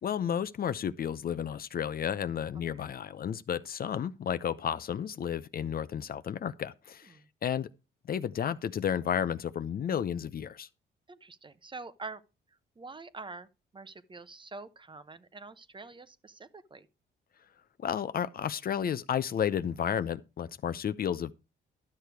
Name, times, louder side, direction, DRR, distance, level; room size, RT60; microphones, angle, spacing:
voice 1, 0.0-7.1 7.4-7.7 8.1-10.7 17.8-21.3, left 8 dB, 50° left, 0.6 m, -32 dB
voice 2, 11.1-12.2 12.8-13.5 13.7-16.9, right 3 dB, 25° right, 0.9 m, -45 dB
12.0 x 6.6 x 4.7 m
cardioid pair, 90°, 20 cm